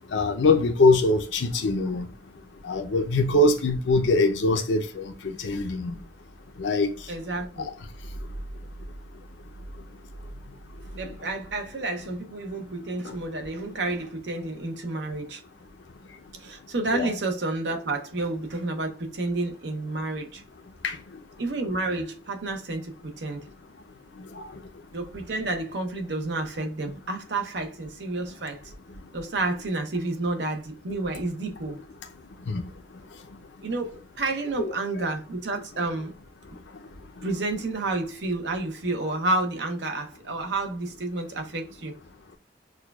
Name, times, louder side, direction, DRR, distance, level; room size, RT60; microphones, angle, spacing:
voice 1, 0.1-2.1 2.7-5.1 5.4-6.0 6.6-6.9 16.9-17.1 20.8-21.0 32.5-32.6 34.6-35.0, left 2 dB, 85° left, 0.6 m, -22 dB
voice 2, 7.1-7.7 10.9-15.4 16.4-20.4 21.4-23.4 24.9-28.7 29.1-31.8 33.6-36.1 37.2-41.9, right 2 dB, 70° right, 0.7 m, -30 dB
6.2 x 2.3 x 2.3 m
head